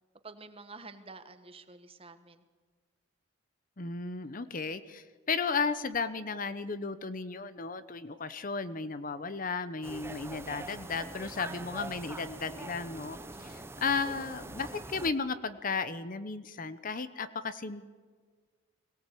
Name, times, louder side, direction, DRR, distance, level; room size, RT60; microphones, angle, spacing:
voice 1, 0.2-2.4 13.3-13.7, right 3 dB, 30° right, 9 dB, 1.3 m, -49 dB
voice 2, 3.8-17.9, left 4 dB, 40° left, 13 dB, 0.8 m, -34 dB
sound 1, 9.8-15.1, right 2 dB, 10° right, 0.8 m, -43 dB
22.0 x 17.5 x 8.4 m, 1.5 s
head